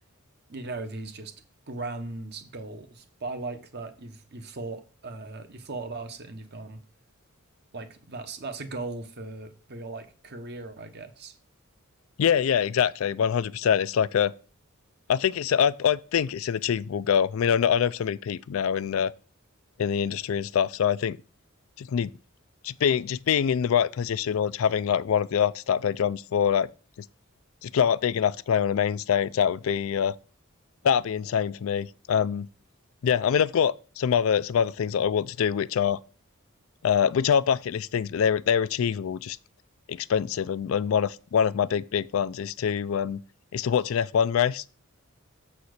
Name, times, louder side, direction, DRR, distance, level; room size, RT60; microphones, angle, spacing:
voice 1, 0.5-1.3 1.7-6.8 7.7-11.3, right 3 dB, 50° right, 0.9 m, -38 dB
voice 2, 12.2-14.3 15.1-19.1 19.8-21.2 21.8-22.1 22.6-26.7 27.6-30.1 30.8-32.5 33.0-36.0 36.8-39.4 39.9-43.2 43.5-44.6, left 8 dB, 70° left, 0.4 m, -24 dB
7.0 x 4.2 x 6.4 m
head